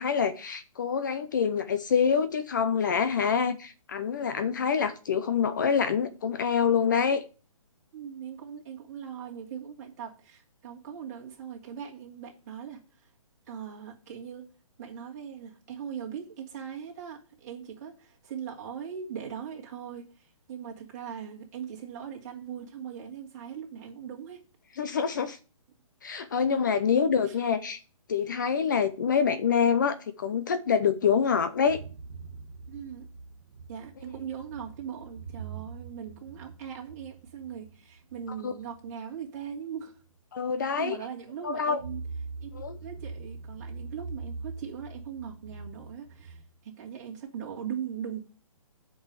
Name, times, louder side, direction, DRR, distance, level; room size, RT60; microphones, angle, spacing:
voice 1, 0.0-7.2 24.8-25.4 26.0-27.8 28.1-31.8 38.4-38.5 40.3-41.0 41.4-41.8 42.5-42.8, left 6 dB, 35° left, 0.6 m, -26 dB
voice 2, 7.9-13.1 13.5-14.4 14.8-24.4 26.4-27.4 32.7-33.1 33.7-40.0 40.8-42.0 42.4-48.2, right 8 dB, 30° right, 2.7 m, -40 dB
sound 1, 31.0-39.6 40.0-40.1 41.8-46.4, right 4 dB, 65° right, 1.8 m, -43 dB
7.8 x 5.5 x 7.5 m
hypercardioid pair, 165°, 18 cm